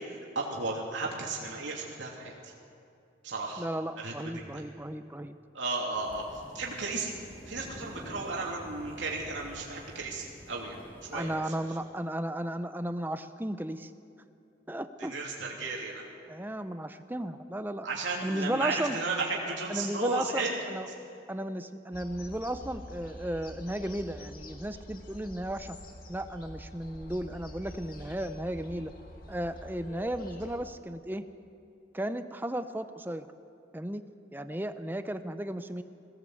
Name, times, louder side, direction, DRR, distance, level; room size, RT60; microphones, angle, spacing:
voice 1, 0.3-2.5 3.2-3.6 4.0-4.3 5.5-6.2 6.5-7.1 7.5-10.8 11.1-11.3 15.0-16.1 17.8-20.6, right 3 dB, 80° right, -2 dB, 2.9 m, -34 dB
voice 2, 3.6-5.4 11.1-13.9 14.7-15.1 16.3-17.9 18.2-19.0 19.7-20.9 21.3-25.8 26.1-28.9 29.3-31.2 31.9-33.3 33.7-34.0 34.3-35.8, right 1 dB, 10° right, 10 dB, 0.6 m, -34 dB
sound 1, 5.9-11.4, equal, 10° left, 2.8 m, -48 dB
sound 2, 21.9-30.6, left 1 dB, 50° left, 2.0 m, -46 dB
21.0 x 17.0 x 7.9 m, 2.5 s
head